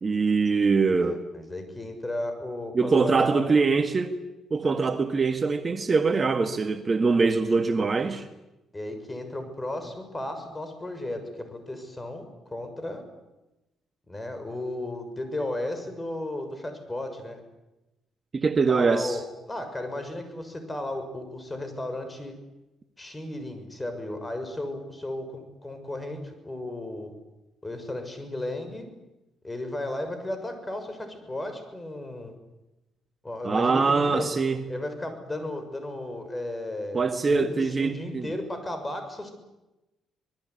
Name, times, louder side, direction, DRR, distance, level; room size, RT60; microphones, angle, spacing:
voice 1, 0.0-1.2 2.7-4.1 4.5-8.2 18.3-19.2 33.4-34.6 36.9-38.3, right 4 dB, 35° right, 7 dB, 1.7 m, -23 dB
voice 2, 1.0-3.6 8.7-13.0 14.1-17.4 18.7-22.3 23.0-27.1 27.6-28.8 29.4-32.3 33.2-34.3 34.7-39.3, left 1 dB, 20° left, 8 dB, 6.8 m, -34 dB
26.0 x 20.5 x 9.9 m, 0.99 s
cardioid pair, 90°, 0 cm